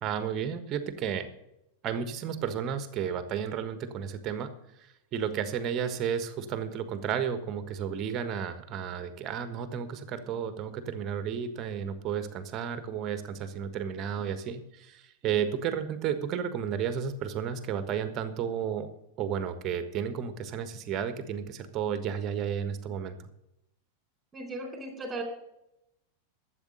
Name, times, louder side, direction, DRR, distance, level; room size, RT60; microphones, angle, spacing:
voice 1, 0.0-1.3 1.8-4.5 4.8-18.9 19.2-23.2, right 8 dB, 35° right, 10 dB, 1.4 m, -32 dB
voice 2, 24.3-25.2, right 2 dB, 15° right, 2 dB, 4.0 m, -37 dB
12.5 x 7.9 x 6.6 m, 0.86 s
figure-of-eight pair, 90°, 0 cm